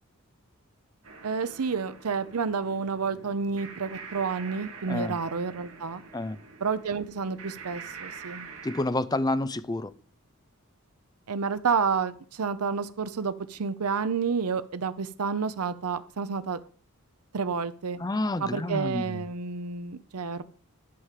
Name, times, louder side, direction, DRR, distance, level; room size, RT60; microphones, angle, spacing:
sound 1, 1.0-8.8, right 5 dB, 65° right, 2.3 m, -45 dB
voice 1, 1.2-6.0 6.6-8.5 11.3-16.6 17.3-18.0 18.4-20.4, right 5 dB, 85° right, 12 dB, 0.6 m, -30 dB
voice 2, 8.6-9.9 18.0-19.2, left 2 dB, 20° left, 15 dB, 0.5 m, -29 dB
11.5 x 5.1 x 7.4 m, 0.44 s
head